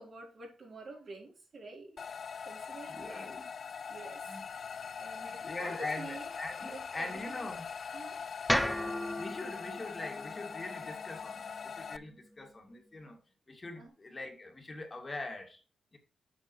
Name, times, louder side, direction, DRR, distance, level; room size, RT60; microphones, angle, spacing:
voice 1, 0.0-2.0 2.4-3.3 3.9-4.4 5.0-6.3 6.7-7.5 7.9-8.2 13.8-13.9, right 2 dB, 55° right, 4.0 m, -48 dB
sound 1, 2.0-12.0, left 6 dB, 55° left, 0.3 m, -42 dB
voice 2, 2.9-3.5 4.3-4.5 5.2-7.6 8.6-13.2 13.5-15.6 15.9-16.0, left 2 dB, 30° left, 2.4 m, -42 dB
sound 2, 8.5-12.6, equal, ahead, 0.7 m, -36 dB
7.9 x 6.4 x 3.2 m
cardioid pair, 75°, 0 cm